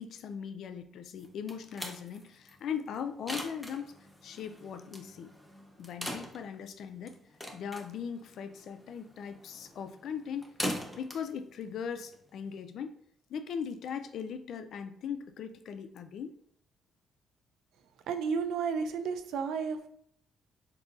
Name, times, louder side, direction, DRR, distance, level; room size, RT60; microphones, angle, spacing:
voice 1, 0.0-3.9 4.2-5.3 5.8-7.2 7.5-10.5 11.0-13.0 13.3-16.4, left 7 dB, 70° left, 8 dB, 0.3 m, -39 dB
sound 1, 1.2-12.6, equal, 5° left, 0.6 m, -43 dB
voice 2, 18.1-19.9, right 6 dB, 80° right, 8 dB, 0.3 m, -32 dB
3.8 x 2.7 x 2.4 m, 0.68 s
cardioid pair, 90°, 0 cm